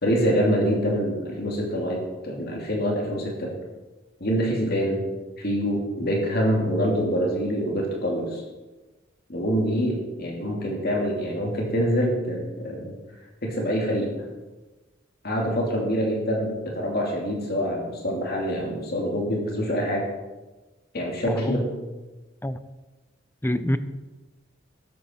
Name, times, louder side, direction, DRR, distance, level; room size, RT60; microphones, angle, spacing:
voice 1, 0.0-3.5 4.2-5.0 5.4-8.4 9.3-13.0 13.4-14.1 15.2-20.0 20.9-21.7, equal, 55° left, -1 dB, 2.8 m, -25 dB
voice 2, 21.2-21.6 22.4-22.6 23.4-23.8, left 1 dB, 10° left, 12 dB, 0.6 m, -26 dB
13.5 x 11.0 x 4.5 m, 1.1 s
head